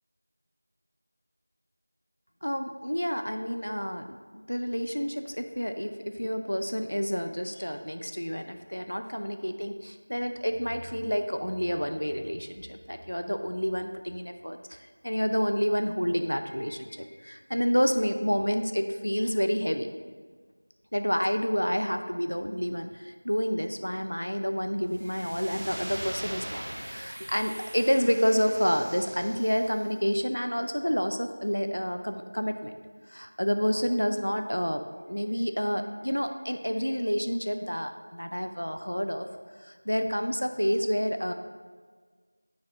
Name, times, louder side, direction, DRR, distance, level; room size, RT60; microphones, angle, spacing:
voice 1, 2.4-19.9 20.9-32.7 33.1-34.8 35.1-39.3 39.6-41.3, equal, 85° left, 7 dB, 0.5 m, -29 dB
sound 1, 24.9-29.9, right 1 dB, 40° right, 0.6 m, -41 dB
9.4 x 4.3 x 3.1 m, 1.5 s
figure-of-eight pair, 175°, 0 cm